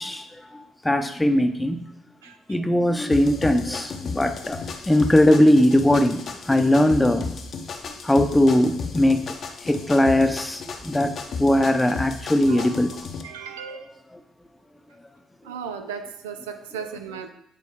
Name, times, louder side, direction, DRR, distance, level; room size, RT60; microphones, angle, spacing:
voice 1, 0.0-1.8 2.5-7.3 7.8-9.3 9.6-13.1 14.1-14.2, left 1 dB, 15° left, 8 dB, 0.7 m, -20 dB
voice 2, 2.2-2.6 12.5-12.7 13.2-13.8 15.4-17.3, right 6 dB, 80° right, 6 dB, 0.5 m, -36 dB
sound 1, 3.1-13.2, left 5 dB, 50° left, 0.8 m, -34 dB
8.2 x 4.1 x 3.6 m, 0.77 s
hypercardioid pair, 45°, 0 cm